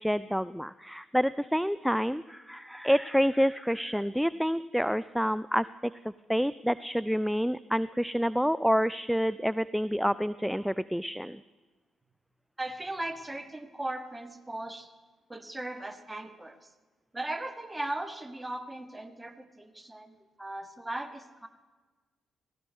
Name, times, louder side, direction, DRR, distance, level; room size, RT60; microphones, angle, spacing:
voice 1, 0.0-5.7 6.3-11.4, equal, ahead, 17 dB, 0.4 m, -28 dB
voice 2, 12.6-14.9 15.3-16.7 17.1-21.5, right 1 dB, 15° right, 8 dB, 1.5 m, -38 dB
17.0 x 16.0 x 4.2 m, 1.3 s
hypercardioid pair, 45°, 0 cm